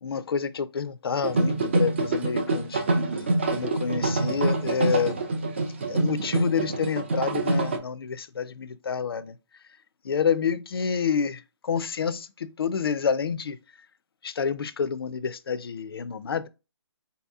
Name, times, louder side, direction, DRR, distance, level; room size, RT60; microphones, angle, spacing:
voice 1, 0.0-2.8 3.2-5.2 5.9-9.4 10.0-13.6 14.2-16.5, left 6 dB, 55° left, 0.4 m, -28 dB
sound 1, 1.2-7.8, right 2 dB, 25° right, 0.4 m, -26 dB
4.0 x 2.8 x 3.4 m
hypercardioid pair, 175°, 15 cm